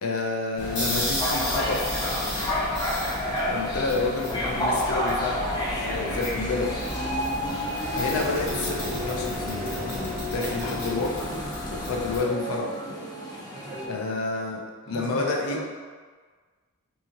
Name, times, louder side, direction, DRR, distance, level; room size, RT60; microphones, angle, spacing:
voice 1, 0.0-1.9 3.5-6.7 7.9-11.3 11.7-12.7 13.9-14.6 14.9-15.6, left 3 dB, 75° left, -1 dB, 0.5 m, -29 dB
sound 1, 0.6-12.2, left 1 dB, 55° left, 1.3 m, -32 dB
sound 2, 1.2-13.9, left 1 dB, 20° left, 0.4 m, -31 dB
voice 2, 5.9-6.3 13.5-14.0 14.8-15.6, right 1 dB, 25° right, -5 dB, 0.6 m, -38 dB
2.8 x 2.7 x 2.4 m, 1.5 s
head